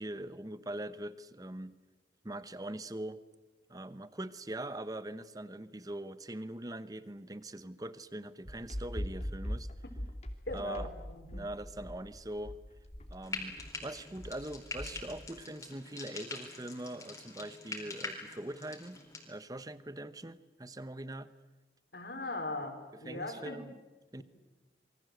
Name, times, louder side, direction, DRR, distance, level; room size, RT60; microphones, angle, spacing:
voice 1, 0.0-1.8 2.2-3.2 3.7-9.7 10.5-10.9 11.3-12.6 13.1-21.3 22.9-23.7 24.1-24.2, right 1 dB, 20° right, 14 dB, 1.0 m, -42 dB
sound 1, 8.4-15.3, equal, 40° left, 2.8 m, -41 dB
voice 2, 10.5-11.5 21.9-23.6, left 2 dB, 65° left, 4 dB, 4.9 m, -40 dB
Frying (food), 13.2-19.3, left 3 dB, 15° left, 4.2 m, -44 dB
27.5 x 23.5 x 7.9 m, 1.1 s
head